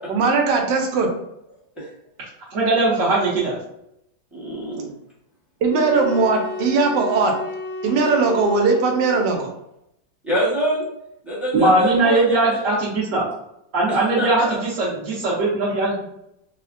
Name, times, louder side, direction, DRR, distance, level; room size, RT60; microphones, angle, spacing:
voice 1, 0.1-1.1 5.6-7.3 7.8-9.5, right 4 dB, 75° right, 3 dB, 1.3 m, -19 dB
voice 2, 2.5-3.6 11.5-13.3 13.7-16.0, right 2 dB, 60° right, -7 dB, 0.9 m, -20 dB
voice 3, 4.3-4.9 10.2-10.9 11.2-12.6 13.9-14.5, equal, ahead, -7 dB, 0.5 m, -25 dB
sound 1, 5.7-9.6, left 2 dB, 70° left, 0.9 m, -32 dB
4.0 x 2.1 x 2.5 m, 0.81 s
omnidirectional pair, 2.0 m